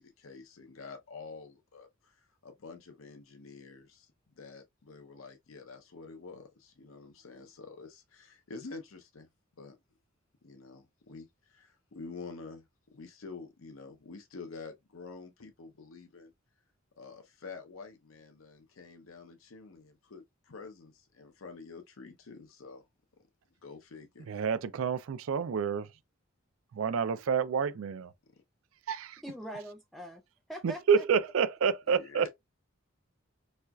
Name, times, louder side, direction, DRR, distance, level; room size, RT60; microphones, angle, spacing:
voice 1, 0.0-9.3 9.6-9.8 10.4-12.6 12.9-16.3 17.0-22.8 23.6-24.3 28.3-28.4 31.9-32.3, left 4 dB, 85° left, 0.6 m, -48 dB
voice 2, 24.3-25.9 26.7-28.1 28.9-29.2 30.6-32.3, right 6 dB, 90° right, 0.4 m, -28 dB
voice 3, 29.2-30.2 30.5-31.0, equal, ahead, 0.3 m, -42 dB
4.2 x 2.3 x 2.3 m
head